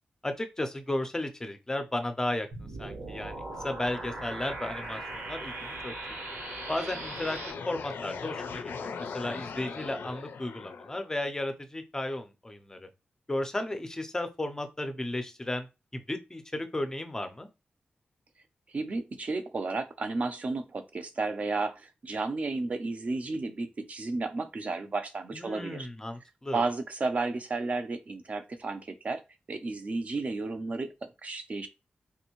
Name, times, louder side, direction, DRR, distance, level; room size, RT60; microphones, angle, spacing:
voice 1, 0.2-2.5 2.8-3.4 3.6-5.9 6.7-7.4 7.7-12.9 13.3-15.7 15.9-17.5 25.3-26.6, left 1 dB, 15° left, 0.5 m, -34 dB
sound 1, 2.5-7.5, right 2 dB, 85° right, 1.0 m, -39 dB
sound 2, 6.2-11.1, left 5 dB, 90° left, 0.4 m, -40 dB
voice 2, 18.7-25.9 26.5-29.2 29.5-31.7, right 3 dB, 40° right, 0.5 m, -32 dB
3.4 x 2.6 x 2.9 m
wide cardioid pair, 160°, 4 cm